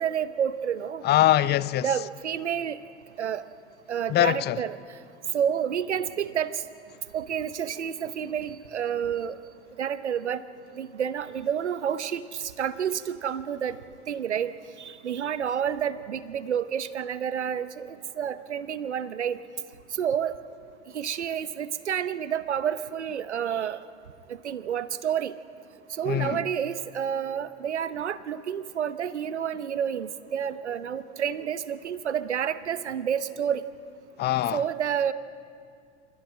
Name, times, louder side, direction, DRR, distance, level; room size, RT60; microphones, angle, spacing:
voice 1, 0.0-1.0 1.8-2.8 3.2-3.4 3.9-4.8 5.3-6.5 7.1-9.4 9.8-10.4 10.7-13.8 14.1-14.5 14.8-19.4 20.0-20.3 20.9-23.8 24.4-25.3 26.0-33.6 34.5-35.1, right 8 dB, 90° right, 0.9 m, -29 dB
voice 2, 1.0-1.9 4.1-4.6 26.1-26.4 34.2-34.6, left 14 dB, 30° left, 0.5 m, -23 dB
29.0 x 15.0 x 6.3 m
hypercardioid pair, 85°, 33 cm